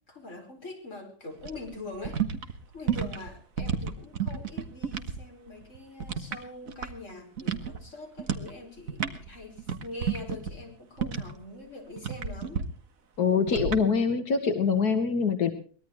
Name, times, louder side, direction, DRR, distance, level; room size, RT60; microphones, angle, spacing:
voice 1, 0.0-12.6, left 2 dB, 50° left, 2 dB, 5.2 m, -43 dB
sound 1, 1.4-5.2 5.5-7.1 7.4-7.8 8.2-8.5 8.8-11.4 12.0-12.6 13.5-13.8, right 7 dB, 60° right, 1.9 m, -31 dB
voice 2, 13.2-15.5, left 5 dB, 85° left, 6 dB, 2.0 m, -24 dB
23.5 x 19.5 x 3.1 m, 0.42 s
omnidirectional pair, 1.6 m